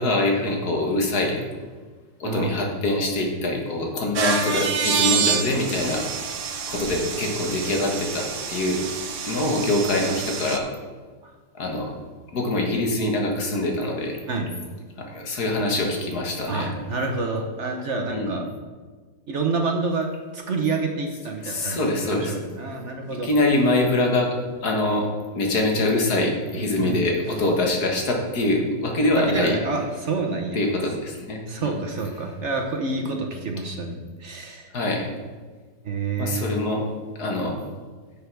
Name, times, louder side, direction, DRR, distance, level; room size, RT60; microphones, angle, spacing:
voice 1, 0.0-1.4 2.2-6.1 6.7-8.8 9.3-10.7 11.5-11.9 12.3-14.2 15.0-16.7 18.1-18.4 21.4-22.3 23.1-24.3 24.6-25.1 25.4-29.6 30.5-31.7 34.7-35.1 36.2-36.8 37.2-37.6, left 2 dB, 55° left, 1 dB, 2.0 m, -24 dB
voice 2, 2.2-2.6 11.2-11.3 14.3-14.5 16.5-18.4 19.3-23.3 26.5-27.1 29.1-30.6 31.5-34.7 35.8-36.5, right 3 dB, 50° right, 3 dB, 1.0 m, -28 dB
sound 1, 4.2-10.6, right 6 dB, 85° right, 1.6 m, -27 dB
10.0 x 7.5 x 4.7 m, 1.4 s
omnidirectional pair, 2.0 m